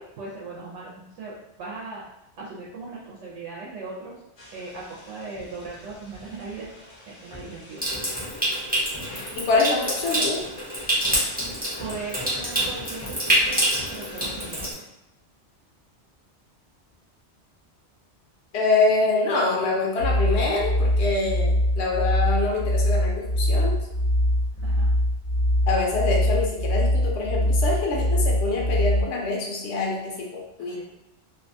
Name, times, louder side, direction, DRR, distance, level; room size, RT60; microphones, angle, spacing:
voice 1, 0.0-2.0 2.4-4.2 4.5-6.7 7.1-7.8 11.8-14.7 24.6-24.9 30.6-30.8, right 3 dB, 85° right, -5 dB, 0.9 m, -38 dB
sound 1, 4.4-14.7, left 1 dB, 30° left, 0.5 m, -43 dB
Water tap faucet / Sink (filling or washing) / Trickle dribble, 7.8-14.7, right 1 dB, 10° right, 0.6 m, -26 dB
voice 2, 9.4-10.4 18.5-23.8 25.7-30.8, left 3 dB, 75° left, -1 dB, 0.8 m, -25 dB
sound 2, 20.0-29.0, left 1 dB, 55° right, 0.7 m, -23 dB
2.6 x 2.2 x 2.6 m, 0.88 s
omnidirectional pair, 1.2 m